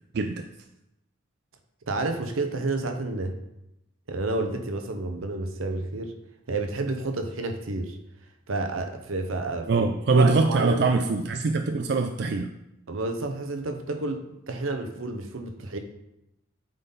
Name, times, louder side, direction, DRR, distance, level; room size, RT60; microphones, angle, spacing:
voice 1, 0.1-0.5 9.7-12.5, right 3 dB, 55° right, 5 dB, 0.4 m, -23 dB
voice 2, 1.9-3.3 4.1-6.1 6.5-8.0 8.5-9.9 10.1-10.8 12.9-14.2 14.5-15.8, right 2 dB, 85° right, 6 dB, 0.8 m, -30 dB
9.0 x 3.8 x 4.0 m, 0.86 s
head